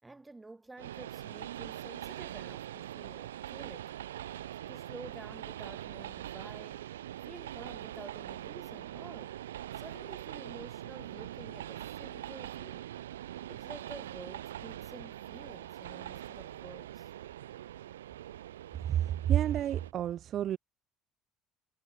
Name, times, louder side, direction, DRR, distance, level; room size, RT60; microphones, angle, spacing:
voice 1, 0.0-3.9 4.7-6.9 7.2-9.4 9.8-12.9 13.5-17.1, right 2 dB, 15° right, 3.4 m, -50 dB
Train, 0.8-19.9, right 12 dB, 75° right, 1.4 m, -43 dB
voice 2, 18.9-20.6, right 11 dB, 45° right, 0.4 m, -29 dB
figure-of-eight pair, 55°, 0 cm